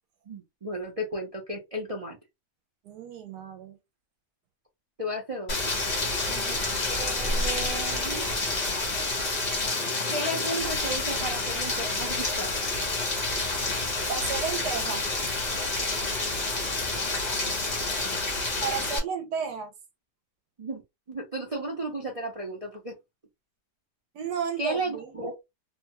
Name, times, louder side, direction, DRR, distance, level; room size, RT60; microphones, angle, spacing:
voice 1, 0.3-2.2 5.0-5.7 6.9-8.3 10.1-12.9 16.0-16.1 20.6-20.8 21.1-23.0 24.6-25.3, right 1 dB, 45° right, 0.4 m, -34 dB
voice 2, 2.8-3.8 6.3-6.7 14.1-15.1 18.6-19.7 24.1-25.2, right 7 dB, 75° right, 1.2 m, -33 dB
Rain, 5.5-19.0, left 2 dB, 30° left, 0.9 m, -28 dB
2.9 x 2.2 x 2.9 m
omnidirectional pair, 1.8 m